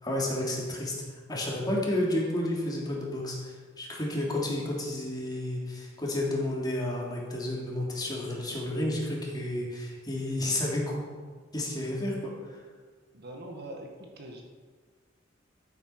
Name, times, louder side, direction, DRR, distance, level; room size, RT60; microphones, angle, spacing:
voice 1, 0.0-0.9 1.3-11.1 11.5-12.6, left 1 dB, 20° left, -3 dB, 3.2 m, -31 dB
voice 2, 13.1-14.4, right 1 dB, 55° right, 2 dB, 1.8 m, -42 dB
14.0 x 8.5 x 5.9 m, 1.5 s
head